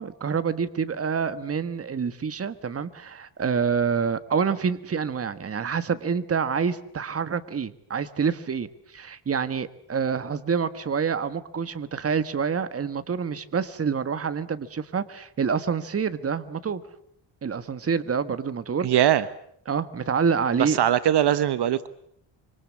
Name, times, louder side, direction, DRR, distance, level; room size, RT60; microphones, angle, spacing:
voice 1, 0.0-8.7 8.9-16.8 17.4-18.9 19.7-20.8, right 6 dB, 30° right, 12 dB, 1.5 m, -27 dB
voice 2, 18.8-19.2 20.6-21.9, right 11 dB, 60° right, 14 dB, 1.2 m, -21 dB
26.0 x 25.0 x 8.5 m, 0.68 s
cardioid pair, 145°, 44 cm